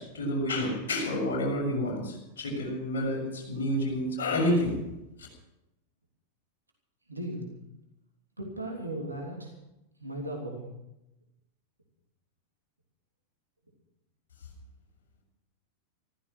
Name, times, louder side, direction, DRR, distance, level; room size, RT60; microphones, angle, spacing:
voice 1, 0.0-4.8, left 1 dB, 60° left, -1 dB, 6.5 m, -29 dB
voice 2, 7.1-7.5 8.4-9.5 10.0-10.7, right 1 dB, 85° right, 0 dB, 3.3 m, -36 dB
15.0 x 14.5 x 6.2 m, 0.92 s
figure-of-eight pair, 90°, 0 cm